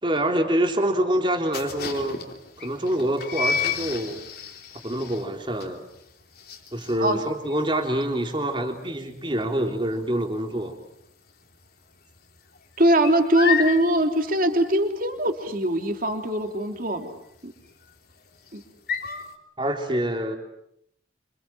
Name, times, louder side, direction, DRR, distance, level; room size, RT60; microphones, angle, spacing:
voice 1, 0.0-2.2 2.6-4.2 4.8-5.8 6.7-10.8 19.6-20.4, right 1 dB, 25° right, 4 dB, 3.6 m, -26 dB
sound 1, 1.5-11.0 11.3-11.7 11.9-19.4, left 6 dB, 50° left, 3.7 m, -32 dB
voice 2, 12.8-17.1 17.4-17.5 18.5-18.6, right 1 dB, 45° right, 4 dB, 3.1 m, -22 dB
28.5 x 26.5 x 7.6 m, 0.75 s
head